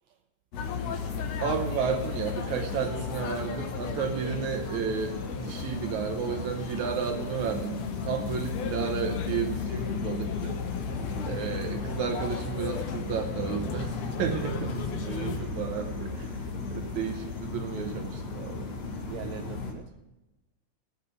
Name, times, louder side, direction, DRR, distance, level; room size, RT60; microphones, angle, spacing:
sound 1, 0.5-19.7, left 4 dB, 55° left, 2.8 m, -35 dB
sound 2, 0.6-15.4, left 5 dB, 70° left, 2.6 m, -38 dB
voice 1, 1.4-10.6 11.3-16.1 16.7-18.7, right 7 dB, 70° right, 6 dB, 2.0 m, -32 dB
sound 3, 7.6-12.0, left 12 dB, 85° left, 2.3 m, -39 dB
voice 2, 11.0-11.4 14.2-14.9 16.0-16.9 19.0-19.9, right 10 dB, 90° right, 7 dB, 1.5 m, -42 dB
17.5 x 6.6 x 6.8 m, 1.0 s
omnidirectional pair, 3.9 m